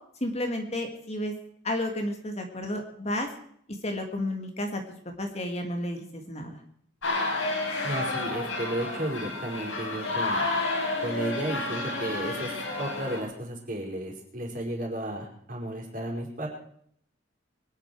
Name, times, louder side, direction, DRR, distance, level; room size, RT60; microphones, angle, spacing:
voice 1, 0.2-1.3 1.6-3.3 3.7-6.6, left 1 dB, 30° left, 4 dB, 1.9 m, -32 dB
sound 1, 7.0-13.2, left 2 dB, 75° left, 4.7 m, -30 dB
voice 2, 7.8-10.5 11.0-16.5, right 1 dB, 40° right, -1 dB, 4.8 m, -33 dB
24.0 x 10.5 x 4.6 m, 0.66 s
head